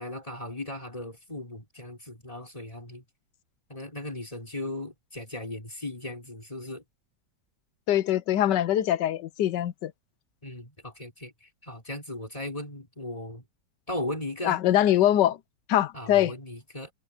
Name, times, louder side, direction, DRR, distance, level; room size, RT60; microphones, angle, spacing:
voice 1, 0.0-3.0 3.7-6.8 10.4-13.4 13.9-14.6 15.9-16.9, left 1 dB, 20° left, 4.7 m, -37 dB
voice 2, 7.9-9.9 14.4-15.4 15.7-16.3, left 12 dB, 80° left, 1.4 m, -23 dB
omnidirectional pair, 1.8 m